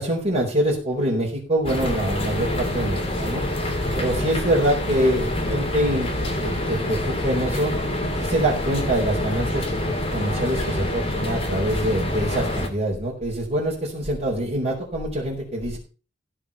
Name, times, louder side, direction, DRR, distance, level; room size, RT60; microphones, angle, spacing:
voice 1, 0.0-3.4 3.9-6.1 6.4-7.7 8.2-15.8, right 1 dB, 35° right, -5 dB, 4.6 m, -25 dB
sound 1, 1.6-12.7, left 1 dB, 30° left, 2.6 m, -26 dB
16.0 x 5.3 x 7.0 m, 0.35 s
head